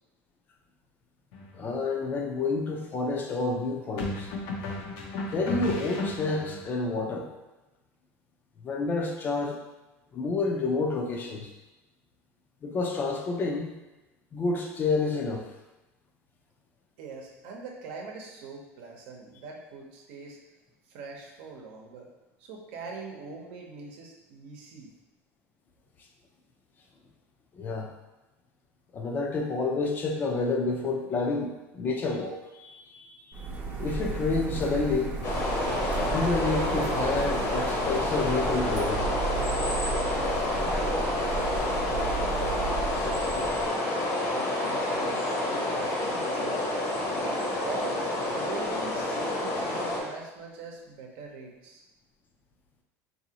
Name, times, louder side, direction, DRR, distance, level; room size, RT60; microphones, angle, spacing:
sound 1, 1.3-1.6 4.0-6.6, left 2 dB, 70° left, 0.6 m, -34 dB
voice 1, 1.5-4.3 5.3-7.3 8.6-9.6 10.1-11.5 12.6-13.7 14.3-15.4 27.5-27.9 28.9-33.1 33.8-35.2 36.1-39.1, left 3 dB, 30° left, 2 dB, 0.4 m, -29 dB
voice 2, 17.0-20.4 20.9-22.1 22.4-24.9 40.1-43.8 44.3-46.6 47.1-51.8, right 4 dB, 80° right, 0 dB, 0.8 m, -42 dB
Printer, 33.3-43.7, right 4 dB, 25° right, 0.6 m, -34 dB
sound 2, 35.2-50.0, left 1 dB, 45° left, 0.8 m, -29 dB
3.8 x 2.7 x 2.8 m, 1.1 s
cardioid pair, 145°, 7 cm